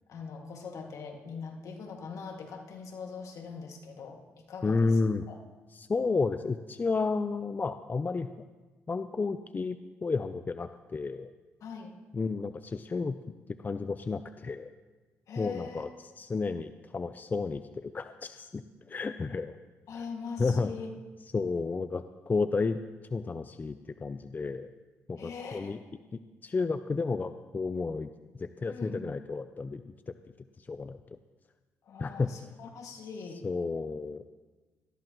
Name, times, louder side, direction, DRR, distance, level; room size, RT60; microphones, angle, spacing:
voice 1, 0.1-4.2 4.5-4.9 5.3-5.4 11.6-11.9 15.3-15.9 19.9-20.9 25.2-25.8 28.7-29.1 31.9-33.4, left 5 dB, 65° left, 2 dB, 2.1 m, -42 dB
voice 2, 4.6-5.3 5.7-8.3 8.9-11.3 12.1-13.2 13.6-14.7 15.4-18.6 18.9-19.5 20.0-20.1 20.4-20.7 21.3-22.8 23.1-24.7 25.1-25.8 26.4-28.1 28.4-30.1 30.6-31.0 32.0-32.3 33.4-34.2, left 4 dB, 30° left, 11 dB, 0.5 m, -31 dB
19.5 x 13.5 x 3.1 m, 1.3 s
supercardioid pair, 70°, 6 cm